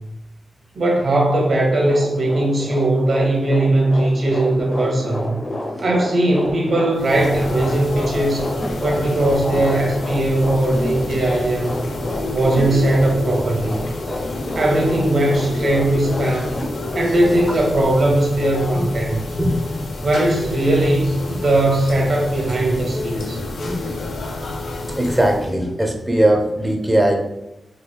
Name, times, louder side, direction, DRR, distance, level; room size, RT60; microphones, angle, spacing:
voice 1, 0.7-5.4 5.8-8.5 8.8-11.9 12.3-13.8 14.5-16.6 16.9-19.2 20.0-23.4, right 1 dB, 65° right, 0 dB, 0.9 m, -19 dB
sound 1, 1.7-17.8, left 1 dB, 55° left, 0.8 m, -30 dB
sound 2, 6.9-25.6, left 2 dB, 85° left, 0.5 m, -29 dB
voice 2, 8.9-9.2 17.5-17.6 19.3-19.6 23.7-23.8 24.6-27.1, right 1 dB, 10° right, 3 dB, 0.5 m, -20 dB
4.0 x 2.5 x 2.2 m, 0.96 s
wide cardioid pair, 85°, 0 cm